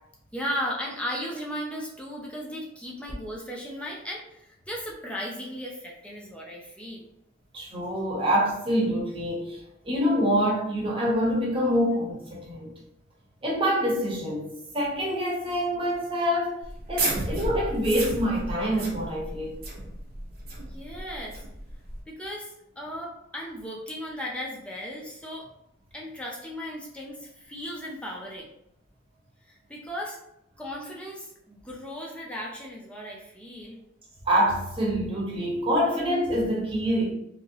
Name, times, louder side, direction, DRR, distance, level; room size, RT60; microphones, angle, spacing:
voice 1, 0.3-7.1 20.7-21.4 22.1-25.5 25.9-28.5 29.5-30.2 30.6-33.8, equal, 5° left, -3 dB, 0.6 m, -36 dB
voice 2, 7.5-9.6 9.8-12.7 13.4-16.6 16.9-19.6 34.3-37.1, equal, 30° right, -4 dB, 1.0 m, -26 dB
sound 1, 16.6-22.0, right 2 dB, 55° right, 0.8 m, -33 dB
2.9 x 2.7 x 2.9 m, 0.77 s
head